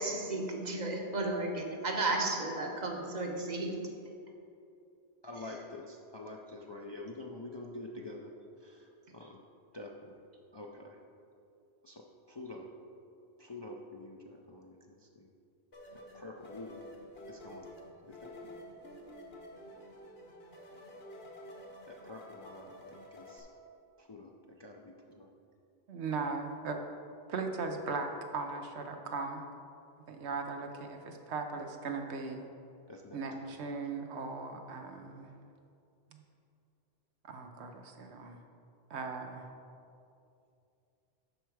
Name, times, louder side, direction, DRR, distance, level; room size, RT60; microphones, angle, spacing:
voice 1, 0.0-3.9, right 2 dB, 45° right, 2 dB, 1.0 m, -33 dB
voice 2, 5.2-8.3 8.6-9.4 9.7-10.2 10.5-11.0 11.8-12.7 13.4-15.3 15.9-16.8 17.3-17.7 18.1-18.6 21.8-23.5 24.0-25.3 32.9-33.2, left 2 dB, 35° left, 0 dB, 0.4 m, -47 dB
sound 1, 15.7-23.4, left 1 dB, 70° left, 1.5 m, -50 dB
voice 3, 25.9-26.8 27.3-29.4 30.1-32.5 33.1-35.3 36.1-36.2 37.2-38.4 38.9-39.5, right 4 dB, 85° right, 4 dB, 1.1 m, -38 dB
11.5 x 4.6 x 4.8 m, 2.6 s
omnidirectional pair, 1.1 m